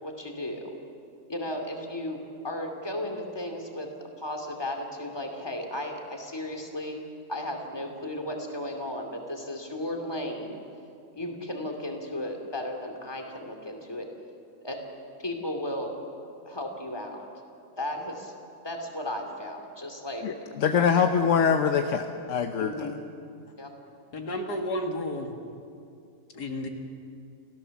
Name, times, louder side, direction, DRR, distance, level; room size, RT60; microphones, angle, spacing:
voice 1, 0.0-0.7 1.3-3.9 4.2-7.0 7.3-10.6 11.1-14.1 14.6-14.8 15.2-15.9 16.4-17.3 17.8-18.3 18.6-20.6 21.2-21.3 22.6-23.0 23.6-23.7, left 1 dB, 15° left, 3 dB, 2.6 m, -35 dB
voice 2, 20.2-22.7, left 6 dB, 55° left, 6 dB, 1.0 m, -24 dB
voice 3, 24.1-25.3 26.3-26.7, left 1 dB, 75° left, 2 dB, 2.6 m, -31 dB
29.0 x 15.5 x 7.1 m, 2.5 s
omnidirectional pair, 1.7 m